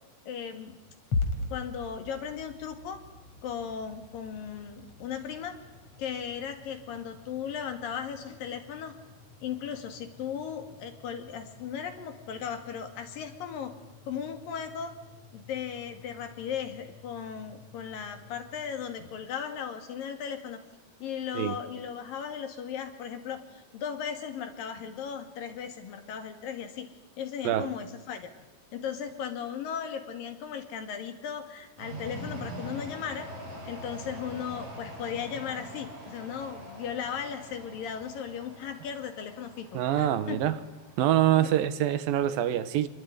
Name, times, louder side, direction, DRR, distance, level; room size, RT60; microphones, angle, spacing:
voice 1, 0.3-0.8 1.5-3.0 3.4-5.6 6.0-8.9 9.4-13.7 14.1-15.0 15.3-20.6 21.0-26.9 27.2-28.3 28.7-33.3 33.7-40.4, left 7 dB, 70° left, 7 dB, 3.8 m, -37 dB
sound 1, 1.1-19.3, left 3 dB, 45° left, 4.0 m, -42 dB
sound 2, 31.8-41.5, equal, 50° right, 9.4 m, -44 dB
voice 2, 39.7-40.5 41.0-42.9, right 12 dB, 80° right, 13 dB, 2.9 m, -25 dB
25.5 x 21.5 x 9.6 m, 1.2 s
omnidirectional pair, 4.2 m